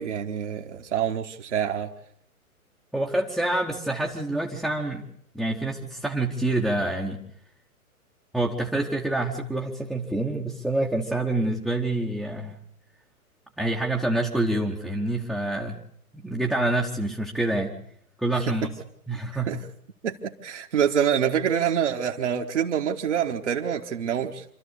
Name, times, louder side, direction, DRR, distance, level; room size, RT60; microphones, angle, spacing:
voice 1, 0.0-1.9 18.5-18.6 19.5-19.6 20.0-24.4, right 8 dB, 50° right, 2 dB, 1.6 m, -26 dB
voice 2, 2.9-5.0 5.3-7.2 8.3-12.6 13.6-15.8 16.1-17.7 18.2-18.7 19.1-19.5, right 2 dB, ahead, -2 dB, 1.0 m, -27 dB
27.0 x 13.5 x 8.3 m, 0.68 s
figure-of-eight pair, 125°, 44 cm